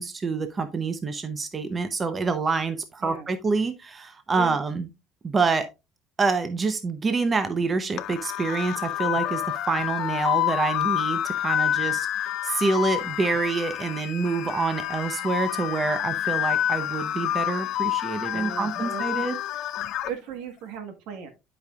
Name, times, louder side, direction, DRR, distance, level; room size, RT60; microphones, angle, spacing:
voice 1, 0.0-4.9 5.2-5.7 6.2-19.4, right 4 dB, 25° right, 0.7 m, -27 dB
voice 2, 4.4-4.7 18.3-19.3 20.0-21.3, right 7 dB, 75° right, 1.4 m, -37 dB
sound 1, 8.0-20.1, left 12 dB, 60° left, 0.6 m, -28 dB
11.0 x 5.2 x 2.3 m
cardioid pair, 140°, 0 cm